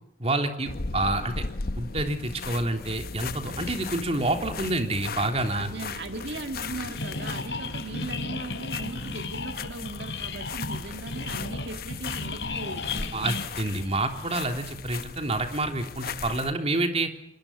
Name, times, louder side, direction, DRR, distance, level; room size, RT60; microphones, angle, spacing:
voice 1, 0.2-1.4 1.8-5.7 13.1-17.1, right 2 dB, 35° right, 5 dB, 3.5 m, -28 dB
sound 1, 0.7-16.5, left 4 dB, 60° left, 1.0 m, -37 dB
voice 2, 5.5-13.3, right 2 dB, 70° right, 6 dB, 2.0 m, -38 dB
sound 2, 7.0-14.4, left 3 dB, 85° left, 4.3 m, -35 dB
26.0 x 22.0 x 9.7 m, 0.75 s
head